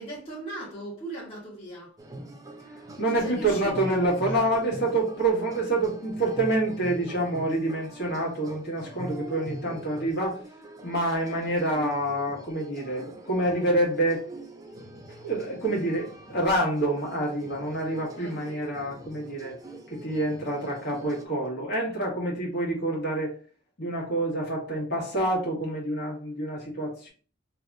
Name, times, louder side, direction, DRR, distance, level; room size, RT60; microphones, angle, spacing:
voice 1, 0.0-1.9 3.2-3.7 4.3-4.5 9.6-9.8 18.0-18.6, right 2 dB, 30° left, 1.3 m, -39 dB
sound 1, 2.0-21.3, right 1 dB, 20° right, 0.5 m, -43 dB
voice 2, 3.0-10.4 10.8-14.3 15.2-19.5 19.9-23.3 23.8-27.1, right 1 dB, 60° left, 1.6 m, -27 dB
3.3 x 2.4 x 3.9 m
head